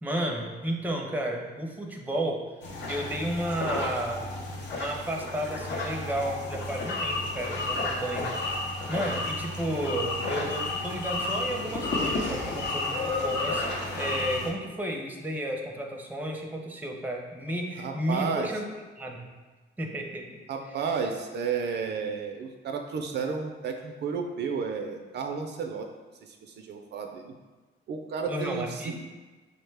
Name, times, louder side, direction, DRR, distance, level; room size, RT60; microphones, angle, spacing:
voice 1, 0.0-2.4 2.9-4.3 4.7-8.3 8.9-13.6 14.0-18.6 19.0-19.3 19.8-20.4 28.3-29.0, right 1 dB, 10° right, 1 dB, 0.6 m, -32 dB
sound 1, 2.6-14.5, left 2 dB, 65° left, 0.7 m, -31 dB
voice 2, 17.8-18.5 20.5-25.9 26.2-27.3 27.9-29.0, right 5 dB, 60° right, 4 dB, 0.4 m, -32 dB
5.2 x 2.1 x 3.3 m, 1.3 s
cardioid pair, 90°, 20 cm